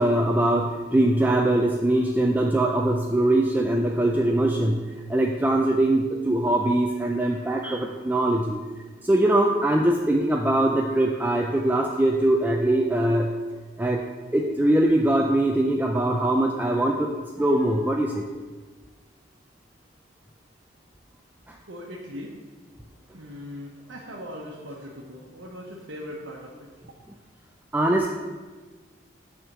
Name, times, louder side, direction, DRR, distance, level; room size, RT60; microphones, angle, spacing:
voice 1, 0.0-4.8 5.1-8.6 9.0-13.3 13.8-14.0 14.3-18.2 27.7-28.1, right 1 dB, 10° right, 1 dB, 0.4 m, -22 dB
voice 2, 21.7-22.3 23.1-26.7, left 1 dB, 80° right, -2 dB, 1.0 m, -39 dB
8.7 x 3.6 x 6.6 m, 1.3 s
head